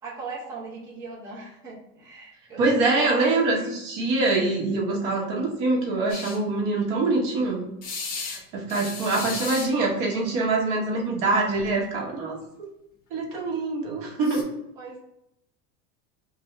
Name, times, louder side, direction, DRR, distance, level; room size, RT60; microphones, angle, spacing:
voice 1, 0.0-3.4 14.8-15.0, right 3 dB, 10° right, -8 dB, 0.8 m, -39 dB
voice 2, 2.6-7.6 8.2-12.7 13.1-14.5, right 3 dB, 50° right, -1 dB, 1.0 m, -24 dB
sound 1, 6.1-6.4 7.8-8.4 8.7-9.7 11.1-11.2 11.5-11.7 14.2-14.4, left 5 dB, 30° left, 0.5 m, -34 dB
3.3 x 2.6 x 4.0 m, 0.82 s
cardioid pair, 180°, 33 cm